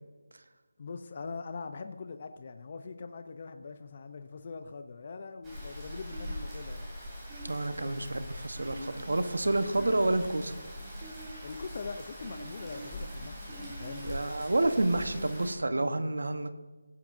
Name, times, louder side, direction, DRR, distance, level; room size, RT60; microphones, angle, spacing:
voice 1, 0.8-6.9 7.8-8.0 11.4-14.1, left 4 dB, 40° left, 8 dB, 0.6 m, -42 dB
Rain, 5.4-15.5, equal, 10° right, 3.0 m, -42 dB
sound 1, 6.1-6.7 7.3-7.8 8.5-9.3 9.7-10.4 11.0-11.7 12.2-12.8 13.5-14.1 14.7-15.3, right 1 dB, 30° right, 2.2 m, -45 dB
voice 2, 7.4-10.5 14.0-16.5, right 2 dB, 75° right, 9 dB, 1.1 m, -29 dB
16.5 x 8.7 x 2.6 m, 1.3 s
figure-of-eight pair, 165°, 0 cm